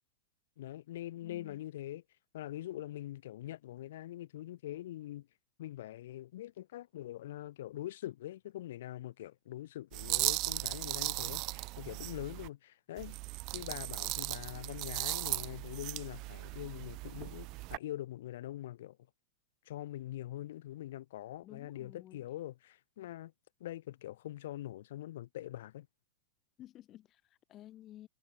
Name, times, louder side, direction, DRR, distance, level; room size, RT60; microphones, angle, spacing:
voice 1, 0.6-2.0 2.3-5.3 5.6-13.2 13.5-19.0 19.7-23.3 23.6-25.9, left 14 dB, 70° left, 0.3 m, -43 dB
voice 2, 1.2-1.6 21.4-22.2 26.6-28.1, left 13 dB, 25° left, 2.0 m, -53 dB
sound 1, 9.9-12.5 13.0-17.8, right 23 dB, 35° right, 0.4 m, -37 dB
supercardioid pair, 165°, 0 cm